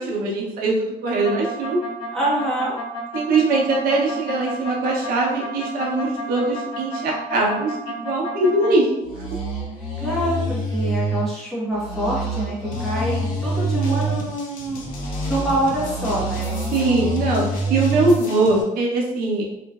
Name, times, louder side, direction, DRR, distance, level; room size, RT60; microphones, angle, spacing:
voice 1, 0.0-1.8 3.1-8.8 16.7-19.5, right 2 dB, 85° right, -2 dB, 0.7 m, -21 dB
sound 1, 1.0-8.7 9.0-11.2 11.7-14.2 14.8-18.2, right 2 dB, 35° left, 1.5 m, -27 dB
voice 2, 2.1-2.8 8.4-9.1 9.8-16.6, right 1 dB, ahead, -8 dB, 1.1 m, -26 dB
sound 2, 12.7-18.6, left 3 dB, 65° left, 0.6 m, -38 dB
3.0 x 2.5 x 2.3 m, 0.89 s
cardioid pair, 130°, 15 cm